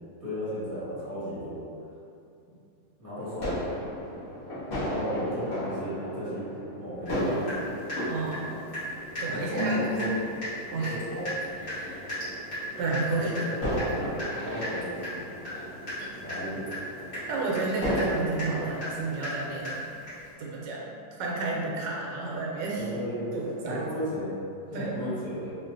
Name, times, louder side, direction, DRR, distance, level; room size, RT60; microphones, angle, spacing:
voice 1, 0.2-1.6 3.0-3.7 4.8-6.5 6.8-7.4 9.3-10.1 10.8-11.3 13.1-13.8 14.4-15.3 16.2-16.6 22.8-23.3 23.7-24.3 24.7-25.5, equal, 10° left, -13 dB, 1.1 m, -34 dB
sound 1, 3.2-19.3, equal, 40° left, 1.4 m, -35 dB
Water tap faucet / Drip, 7.1-7.2 7.5-8.9 9.2-9.3 9.6-9.7 10.0-10.1 10.4-10.6 10.8-20.3, equal, 60° left, 2.1 m, -36 dB
voice 2, 8.0-8.6 9.2-10.1 10.7-11.0 11.7-12.2 12.8-13.3 13.9-14.0 14.5-14.6 16.0-16.1 17.3-19.8 20.4-20.9 21.2-22.8 23.3-23.8 24.7-24.9, right 3 dB, 80° right, -3 dB, 1.2 m, -31 dB
3.8 x 2.4 x 2.5 m, 2.5 s
omnidirectional pair, 1.9 m